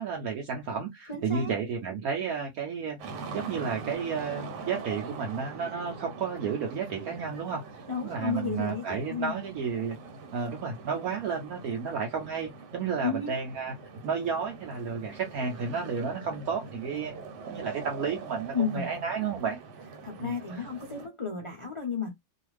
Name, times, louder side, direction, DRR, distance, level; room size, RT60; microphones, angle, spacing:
voice 1, 0.0-3.0 3.3-7.6 8.0-10.0 10.3-13.7 14.0-17.1 17.5-19.6 20.2-20.6, right 6 dB, 70° right, 1.0 m, -32 dB
voice 2, 1.1-1.6 7.9-9.4 13.0-13.4 18.5-18.9 20.0-22.1, left 6 dB, 55° left, 0.3 m, -32 dB
sound 1, 3.0-21.1, right 4 dB, 85° right, 1.4 m, -43 dB
2.7 x 2.4 x 3.1 m
omnidirectional pair, 1.8 m